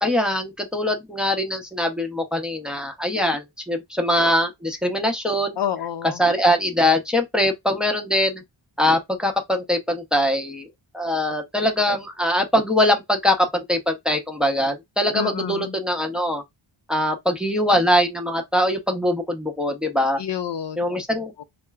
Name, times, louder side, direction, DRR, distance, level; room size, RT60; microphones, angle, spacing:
voice 1, 0.0-5.6 6.2-8.4 8.8-10.7 10.9-16.4 16.9-20.2 20.8-21.3, left 1 dB, ahead, 0.7 m, -22 dB
voice 2, 5.6-6.2 15.1-15.8 20.2-21.0 21.4-21.5, left 9 dB, 60° left, 0.5 m, -29 dB
4.3 x 2.1 x 2.3 m
wide cardioid pair, 95°, 50 cm